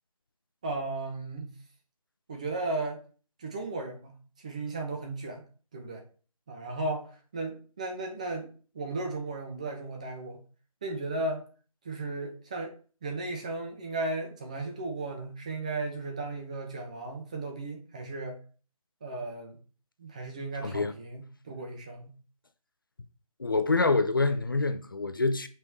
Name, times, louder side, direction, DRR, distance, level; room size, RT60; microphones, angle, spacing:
voice 1, 0.6-1.5 2.3-3.0 3.4-4.2 4.4-5.4 5.7-6.0 6.5-7.1 7.3-8.5 8.7-10.4 10.8-11.4 11.8-12.7 13.0-18.4 19.0-19.6 20.0-22.1, right 2 dB, 10° right, 0.8 m, -35 dB
voice 2, 20.6-20.9 23.4-25.5, left 3 dB, 35° left, 0.6 m, -26 dB
8.0 x 5.8 x 4.7 m
figure-of-eight pair, 170°, 19 cm